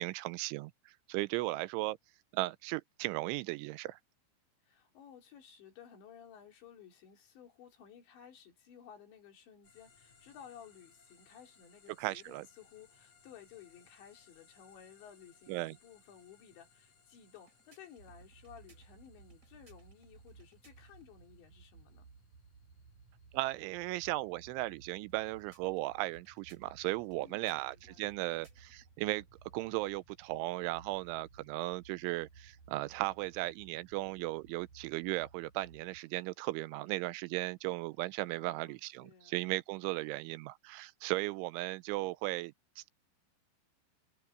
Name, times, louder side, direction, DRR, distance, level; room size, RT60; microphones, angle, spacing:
voice 1, 0.0-2.0 2.3-4.0 12.0-12.5 15.5-15.8 23.3-29.2 29.5-42.9, right 19 dB, 85° right, 3.0 m, -36 dB
voice 2, 4.7-22.1 27.2-28.1 38.3-39.4, left 8 dB, 70° left, 5.3 m, -56 dB
sound 1, 9.6-23.8, left 5 dB, 40° left, 5.1 m, -67 dB
sound 2, 17.2-21.1 25.0-28.9, right 2 dB, 20° right, 2.6 m, -70 dB
sound 3, 18.0-36.0, right 4 dB, 45° right, 3.3 m, -59 dB
omnidirectional pair, 5.5 m